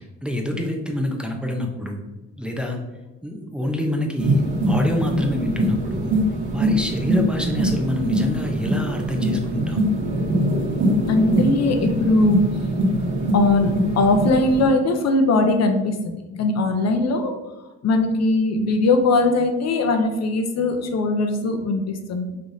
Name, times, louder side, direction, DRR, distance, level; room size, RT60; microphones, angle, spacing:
voice 1, 0.2-2.0 2.4-2.8 3.2-6.1 6.5-9.9, left 1 dB, 5° right, 1 dB, 0.6 m, -26 dB
sound 1, 4.2-14.7, equal, 80° right, 1.2 m, -23 dB
voice 2, 11.1-12.4 13.3-17.3 17.8-22.3, left 2 dB, 60° left, 5 dB, 0.6 m, -20 dB
5.2 x 3.2 x 2.7 m, 1.1 s
cardioid pair, 90°, 30 cm